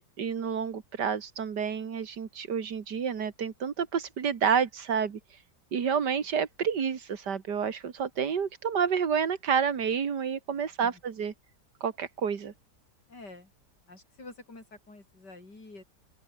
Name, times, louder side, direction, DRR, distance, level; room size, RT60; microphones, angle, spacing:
voice 1, 0.0-5.2 5.7-11.3 11.8-12.5, right 7 dB, 80° right, 2.4 m, -29 dB
voice 2, 10.5-11.0 13.1-13.5 13.9-15.8, left 2 dB, 80° left, 6.6 m, -48 dB
open air
omnidirectional pair, 1.8 m